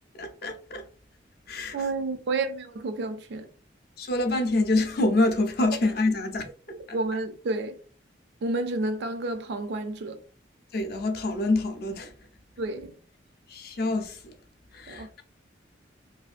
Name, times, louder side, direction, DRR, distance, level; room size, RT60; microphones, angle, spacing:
voice 1, 0.2-0.8 1.5-1.8 4.0-6.5 10.7-12.1 13.5-14.3 14.7-15.2, left 2 dB, 55° left, 0.5 m, -26 dB
voice 2, 1.7-3.5 6.7-7.8 8.4-10.2 12.6-13.0 14.9-15.1, right 2 dB, 60° right, 0.4 m, -30 dB
2.6 x 2.4 x 2.4 m
head